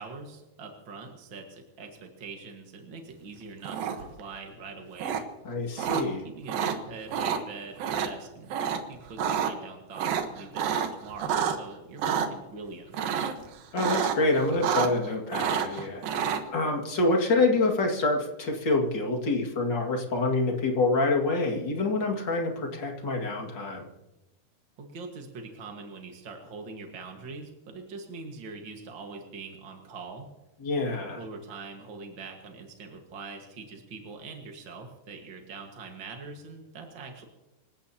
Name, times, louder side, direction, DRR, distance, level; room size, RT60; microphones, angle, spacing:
voice 1, 0.0-5.2 5.9-13.2 24.8-30.3 31.2-37.2, right 4 dB, 50° right, 2 dB, 1.5 m, -43 dB
sound 1, 3.6-4.2 5.0-5.2 5.8-6.0 6.5-6.8 7.1-7.4 7.8-8.1 8.5-8.8 9.1-9.5 9.9-11.6 12.0-12.3 12.9-13.4 13.8-14.2 14.4-15.1 15.3-16.4, right 8 dB, 70° right, 2.9 m, -28 dB
voice 2, 5.5-6.2 13.7-16.0 16.5-23.9 30.6-31.2, left 2 dB, 35° left, 1 dB, 2.1 m, -26 dB
26.0 x 16.5 x 2.9 m, 1.1 s
omnidirectional pair, 4.7 m